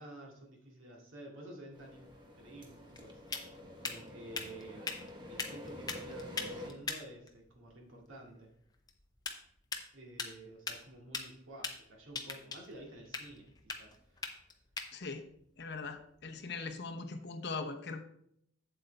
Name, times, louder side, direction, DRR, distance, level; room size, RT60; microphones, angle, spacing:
voice 1, 0.0-2.1 2.3-3.5 3.8-4.9 5.3-8.5 9.9-14.5, right 1 dB, 65° right, -1 dB, 2.2 m, -51 dB
sound 1, 1.7-6.7, left 1 dB, 20° right, 1.1 m, -48 dB
sound 2, 2.0-16.7, left 4 dB, 20° left, 0.7 m, -44 dB
voice 2, 14.9-15.2 15.6-18.0, left 4 dB, 50° left, 5 dB, 0.8 m, -40 dB
7.9 x 7.8 x 3.4 m, 0.71 s
head